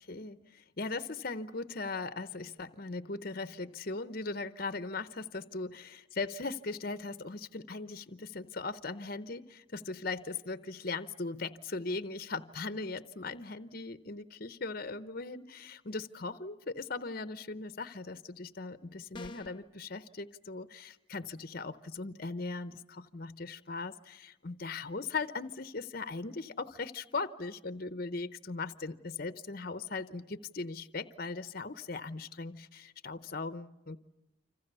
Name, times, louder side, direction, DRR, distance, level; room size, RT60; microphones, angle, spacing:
voice 1, 0.0-34.0, left 3 dB, 45° left, 13 dB, 0.9 m, -39 dB
sound 1, 19.1-19.7, left 3 dB, 25° left, 1.0 m, -46 dB
29.0 x 26.5 x 6.8 m, 0.95 s
head